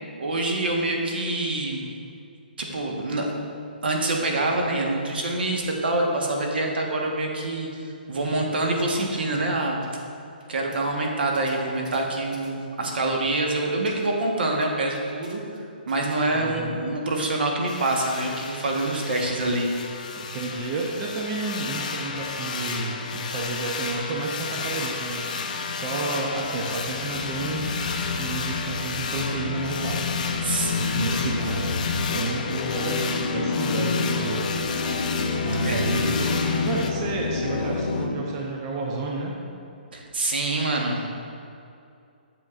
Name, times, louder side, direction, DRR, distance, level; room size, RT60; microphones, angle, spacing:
voice 1, 0.2-1.8 2.6-3.4 3.8-7.7 8.1-9.8 10.5-15.4 15.9-19.7 30.4-31.1 35.6-35.9 39.9-41.2, right 2 dB, 70° right, 0 dB, 1.2 m, -26 dB
sound 1, 8.4-10.5 10.7-10.8 11.3-12.5 12.8-13.0 13.6-14.3 14.5-15.6 15.9-16.2 16.9-17.0 17.2-17.3 17.6-17.7 18.0-18.1 18.6-18.7 19.3-19.7 20.2-20.3 20.6-20.7 21.2-21.3 21.6-21.7 22.1-22.8 23.1-23.3 23.8-26.0, right 1 dB, 50° right, 1.0 m, -46 dB
voice 2, 16.3-16.8 20.2-25.3 25.7-30.2 30.7-34.5 35.4-39.4, right 3 dB, 25° right, -1 dB, 0.6 m, -31 dB
sound 2, 17.7-36.9, left 5 dB, 45° left, 0.6 m, -33 dB
sound 3, 24.8-38.1, left 4 dB, 90° left, 0.8 m, -29 dB
7.8 x 7.3 x 2.4 m, 2.5 s
hypercardioid pair, 165°, 5 cm